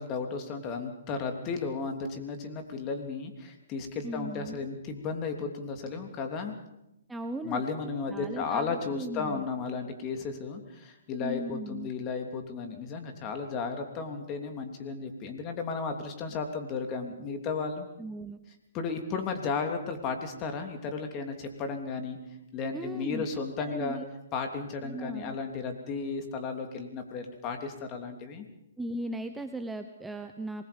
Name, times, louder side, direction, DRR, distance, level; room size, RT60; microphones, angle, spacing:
voice 1, 0.0-6.5 7.4-17.9 18.7-22.2 22.5-24.0 24.3-28.5, left 4 dB, 30° left, 5 dB, 3.1 m, -34 dB
voice 2, 4.0-4.6 7.1-7.6 8.1-9.5 11.2-11.9 18.0-18.4 22.7-23.2 23.7-24.1 24.8-25.4 28.8-30.6, right 2 dB, 5° right, 7 dB, 1.0 m, -37 dB
27.0 x 20.5 x 5.4 m, 0.86 s
hypercardioid pair, 140°, 0 cm